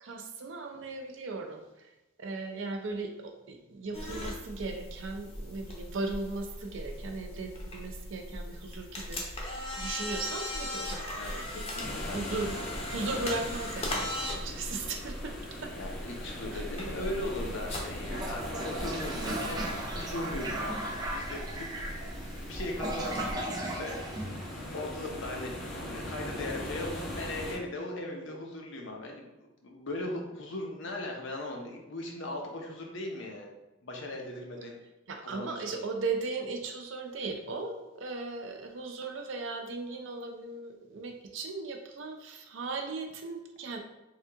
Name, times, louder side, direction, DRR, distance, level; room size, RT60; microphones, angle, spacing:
voice 1, 0.0-1.9 2.2-11.5 12.1-12.6 12.9-15.4 15.6-15.7 16.5-16.6 35.1-43.8, right 3 dB, 75° right, 4 dB, 0.5 m, -37 dB
sound 1, 3.9-23.3, left 1 dB, 30° left, 0.7 m, -39 dB
voice 2, 11.1-12.3 15.7-20.8 21.1-22.1 22.4-24.0 24.5-29.3 29.6-33.5 33.8-34.8 35.2-35.7, left 1 dB, 70° left, 1 dB, 0.8 m, -38 dB
sound 2, 11.8-27.6, equal, 90° left, 1.3 m, -41 dB
Toilet flush, 18.1-25.0, right 1 dB, 20° right, 0.4 m, -37 dB
3.5 x 2.7 x 3.4 m, 1.0 s
head